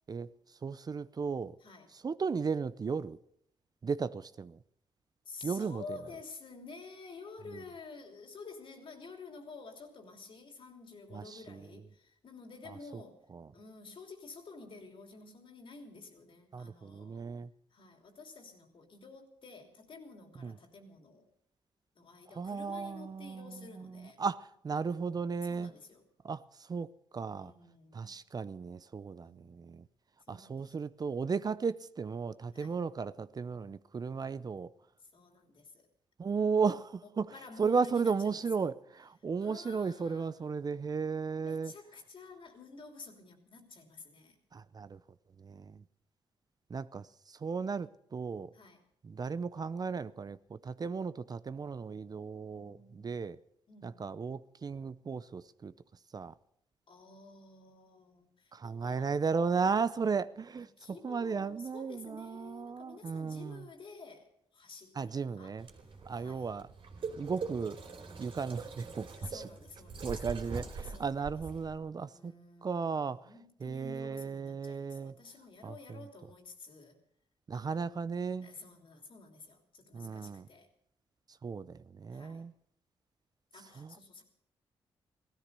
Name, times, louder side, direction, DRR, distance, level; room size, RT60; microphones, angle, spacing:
voice 1, 0.6-1.6 1.9-3.2 3.8-4.6 5.4-5.8 7.5-7.6 11.1-11.7 12.7-13.0 13.3-13.5 16.5-17.5 20.4-20.5 22.3-25.7 26.2-26.9 27.1-27.5 27.9-29.9 30.3-34.7 36.2-37.3 37.6-41.7 44.5-45.0 45.4-45.8 46.7-48.5 49.0-53.4 53.8-55.7 56.1-56.3 58.5-63.6 65.0-65.7 66.1-66.7 67.1-67.8 68.2-69.5 70.0-72.3 72.6-73.3 73.6-75.1 75.6-76.0 77.5-78.5 79.9-80.5 81.4-82.5 83.8-83.9, right 5 dB, 40° right, 0.6 m, -35 dB
voice 2, 1.6-2.0 5.2-13.2 13.5-17.3 17.7-21.3 21.9-24.2 25.5-26.0 27.3-28.2 29.2-29.5 30.3-30.7 32.5-32.8 35.0-35.9 36.6-36.7 37.3-38.2 39.4-40.3 41.1-44.4 48.5-48.8 52.5-53.3 53.7-54.0 56.9-59.2 60.8-65.6 66.1-66.5 69.2-70.1 70.8-71.2 71.6-71.7 72.1-77.0 77.5-77.8 78.4-80.7 82.1-82.5 83.5-84.2, left 4 dB, 55° left, 3.2 m, -51 dB
sound 1, 65.6-71.7, right 4 dB, 60° right, 3.2 m, -43 dB
16.0 x 13.5 x 6.8 m
cardioid pair, 70°, 10 cm